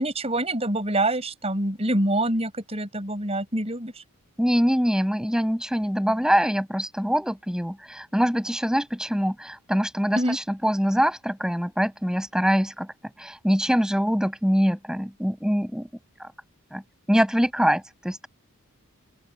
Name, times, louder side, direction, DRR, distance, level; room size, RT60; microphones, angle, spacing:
voice 1, 0.0-4.0 10.2-10.4, right 1 dB, 30° right, 7.8 m, -26 dB
voice 2, 4.4-12.9 13.2-15.9 16.2-16.3 16.7-16.8 17.1-18.3, equal, 5° right, 7.1 m, -24 dB
open air
head